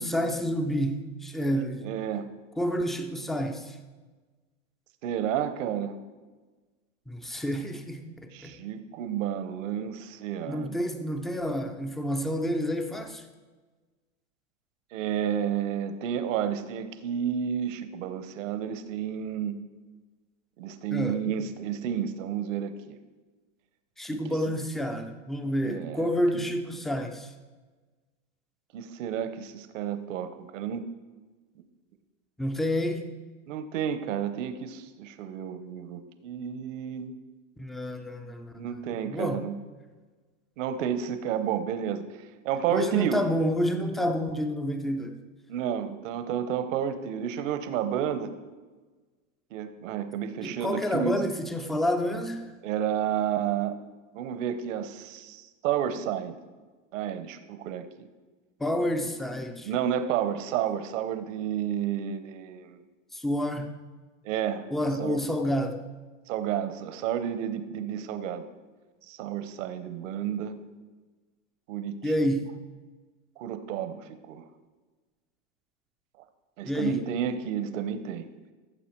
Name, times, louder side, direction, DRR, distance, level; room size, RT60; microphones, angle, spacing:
voice 1, 0.0-1.9 2.6-3.8 7.1-8.5 10.5-13.2 20.9-21.2 24.0-27.3 32.4-33.1 37.6-38.7 39.1-39.4 42.7-45.2 50.4-52.5 58.6-59.7 63.1-63.7 64.7-65.7 72.0-72.5 76.7-77.0, equal, ahead, 6 dB, 0.3 m, -29 dB
voice 2, 1.8-2.3 5.0-6.0 8.3-10.8 14.9-19.6 20.6-23.0 25.6-26.1 28.7-30.9 33.5-37.2 38.6-39.5 40.6-43.2 45.5-48.3 49.5-51.2 52.6-53.8 54.1-56.3 56.9-58.1 59.6-62.8 64.2-64.7 65.0-65.2 66.3-68.4 69.1-70.6 71.7-72.0 73.4-74.5 76.6-78.3, right 9 dB, 70° right, 10 dB, 1.0 m, -31 dB
14.5 x 6.8 x 4.5 m, 1.3 s
supercardioid pair, 130°, 39 cm